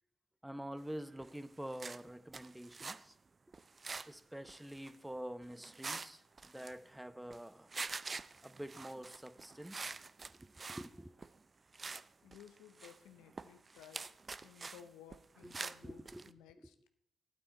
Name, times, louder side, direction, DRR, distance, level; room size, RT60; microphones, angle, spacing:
voice 1, 0.4-3.1 4.1-7.7 8.4-10.0 10.3-11.2 15.4-15.5 15.8-16.4, right 1 dB, 10° right, 14 dB, 0.8 m, -47 dB
sound 1, 1.1-1.4 1.7-3.0 3.5-4.2 4.4-4.9 5.4-6.1 6.4-7.4 7.7-10.9 11.2-11.4 11.7-12.1 12.3-14.8 15.1-16.3, right 4 dB, 40° right, 0.4 m, -46 dB
voice 2, 12.2-14.1 14.4-16.7, left 9 dB, 85° left, 9 dB, 0.7 m, -57 dB
12.0 x 9.1 x 4.4 m, 0.65 s
hypercardioid pair, 45°, 0 cm